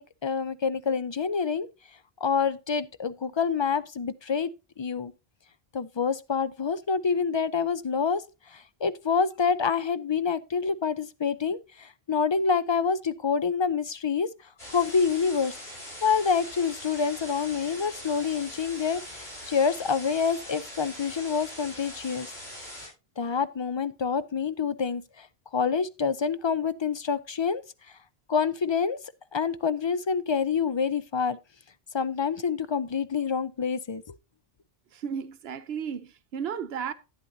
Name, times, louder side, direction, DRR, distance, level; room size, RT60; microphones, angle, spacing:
voice 1, 0.0-1.7 2.2-4.5 4.8-5.1 5.7-8.2 8.5-14.3 14.7-15.5 16.0-22.3 23.2-25.3 25.5-27.6 28.3-29.0 29.3-31.4 31.9-34.0, left 6 dB, 40° left, 0.4 m, -27 dB
sound 1, 14.6-22.9, left 1 dB, 85° left, 6.4 m, -42 dB
voice 2, 34.9-36.9, right 7 dB, 80° right, 0.9 m, -34 dB
11.5 x 9.7 x 2.7 m
omnidirectional pair, 1.0 m